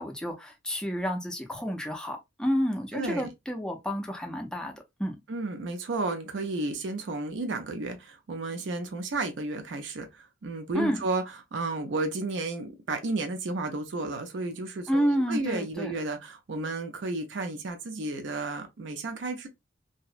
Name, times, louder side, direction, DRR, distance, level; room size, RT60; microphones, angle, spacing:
voice 1, 0.0-4.7 5.0-5.2 10.7-11.0 14.9-15.9, equal, 5° left, 0.4 m, -30 dB
voice 2, 2.9-3.3 5.3-11.2 11.5-19.5, right 2 dB, 70° right, 0.5 m, -32 dB
2.7 x 2.0 x 2.3 m
head